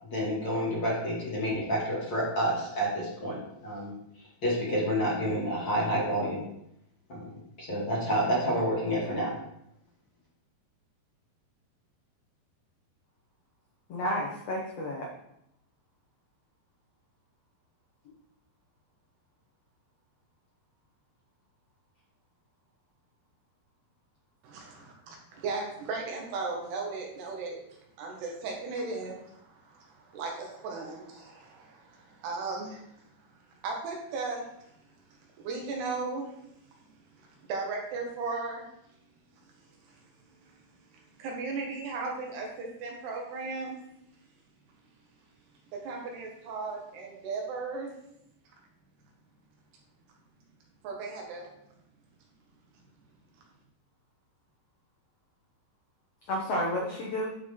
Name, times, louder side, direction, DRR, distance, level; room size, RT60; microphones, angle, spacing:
voice 1, 0.1-3.9 4.4-6.4 7.1-9.3, equal, 30° left, -6 dB, 2.7 m, -29 dB
voice 2, 13.9-15.1 18.0-18.1 56.3-57.3, equal, 85° left, -2 dB, 1.3 m, -31 dB
voice 3, 24.4-27.6 28.0-34.7 35.1-36.4 36.8-36.9 37.2-38.6 39.9-40.0 40.4-40.5 40.9-43.8 45.7-47.9 50.8-51.5, right 3 dB, 90° right, 0 dB, 3.6 m, -37 dB
10.5 x 4.9 x 3.8 m, 0.77 s
omnidirectional pair, 4.6 m